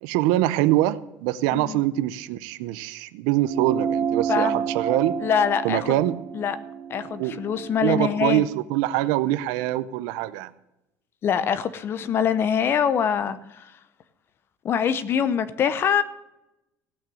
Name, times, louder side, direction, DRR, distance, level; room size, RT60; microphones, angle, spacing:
voice 1, 0.0-5.1 5.6-6.2 7.2-7.4 7.8-10.5, right 15 dB, 85° right, 14 dB, 0.7 m, -24 dB
voice 2, 1.5-1.8 4.3-4.6 5.2-6.0 6.3-6.6 6.9-8.4 11.2-13.7 14.6-16.0, left 8 dB, 40° left, 13 dB, 0.8 m, -24 dB
sound 1, 3.4-8.3, right 7 dB, 35° right, 1.4 m, -30 dB
16.5 x 6.0 x 7.7 m, 0.92 s
cardioid pair, 140°, 6 cm